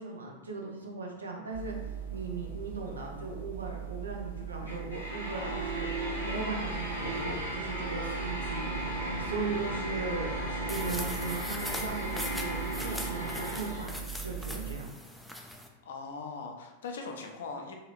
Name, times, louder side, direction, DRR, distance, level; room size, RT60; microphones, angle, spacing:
voice 1, 0.0-1.7 2.1-13.9 14.2-14.9, right 3 dB, 75° right, 0 dB, 0.7 m, -38 dB
sound 1, 1.5-14.8, right 2 dB, 85° left, 1.2 m, -36 dB
voice 2, 5.3-5.7 15.8-17.8, left 4 dB, 60° left, 3 dB, 0.5 m, -40 dB
sound 2, 10.7-15.7, left 1 dB, ahead, 0.4 m, -41 dB
4.0 x 2.5 x 3.0 m, 1.1 s
figure-of-eight pair, 90°, 0 cm